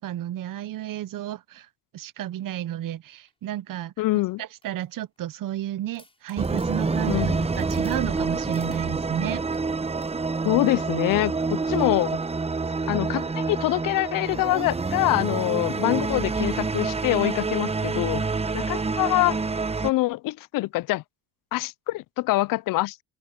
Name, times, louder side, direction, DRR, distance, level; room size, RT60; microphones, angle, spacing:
voice 1, 0.0-1.7 1.9-3.9 4.4-9.4, right 13 dB, 70° right, 1.0 m, -32 dB
sound 1, 3.1-3.4 4.1-5.2 5.6-5.7 5.9-9.1 9.5-10.9 11.4-11.7 12.0-12.3 12.8-14.5 15.0-15.3 15.5-15.6 15.8-16.0 16.5-16.7 17.0-17.1 18.1-18.4 18.9-19.0, left 2 dB, 15° left, 7.1 m, -59 dB
voice 2, 4.0-4.4 7.1-7.5 10.4-12.1 12.9-18.2 18.5-19.4 19.8-21.0 21.5-23.0, left 18 dB, 70° left, 0.5 m, -25 dB
sound 2, 6.4-19.9, right 4 dB, 15° right, 0.9 m, -27 dB
supercardioid pair, 70°, 35 cm